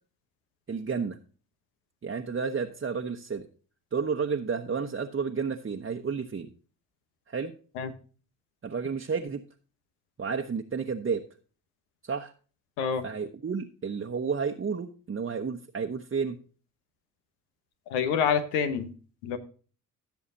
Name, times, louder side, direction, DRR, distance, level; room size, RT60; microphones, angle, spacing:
voice 1, 0.7-1.2 2.0-3.5 3.9-6.5 7.3-7.5 8.6-9.4 10.2-11.2 12.0-12.3 13.0-16.4, right 5 dB, 30° right, 3 dB, 1.0 m, -31 dB
voice 2, 17.9-18.9 19.2-19.4, left 7 dB, 85° left, 10 dB, 1.1 m, -27 dB
16.0 x 7.0 x 2.7 m, 0.38 s
hypercardioid pair, 45°, 44 cm